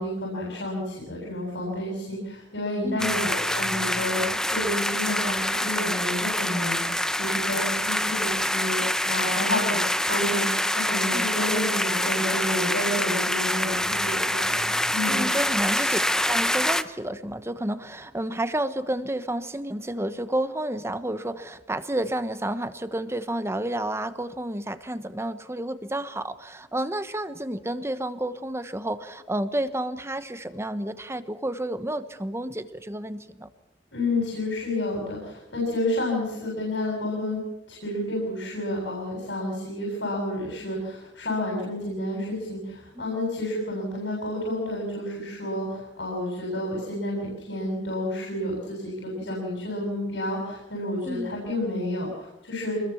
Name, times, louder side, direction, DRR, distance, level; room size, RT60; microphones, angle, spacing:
voice 1, 0.0-9.8 10.1-14.6 14.9-15.3 33.9-37.4 37.7-52.8, left 1 dB, 75° left, -2 dB, 7.8 m, -30 dB
voice 2, 2.8-3.2 11.1-11.2 15.1-16.0 16.3-33.5 42.9-43.2 51.0-51.4, right 1 dB, 15° right, 11 dB, 1.1 m, -30 dB
sound 1, 3.0-16.8, left 1 dB, 5° left, 0.8 m, -26 dB
26.0 x 21.5 x 7.3 m, 0.93 s
head